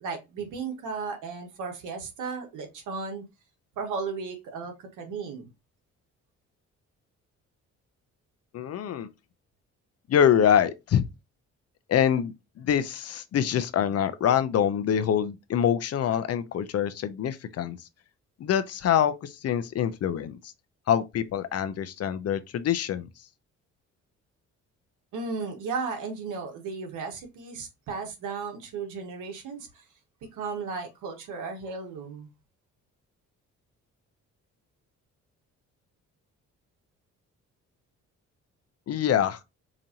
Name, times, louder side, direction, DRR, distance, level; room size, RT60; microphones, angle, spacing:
voice 1, 0.0-3.2 3.8-5.5 25.1-29.7 30.3-32.3, right 4 dB, 85° right, 1.4 m, -35 dB
voice 2, 8.5-9.1 10.1-11.0 11.9-17.8 18.4-20.4 20.9-23.1 38.9-39.4, left 9 dB, 55° left, 0.6 m, -25 dB
5.0 x 2.6 x 2.8 m
cardioid pair, 90°, 30 cm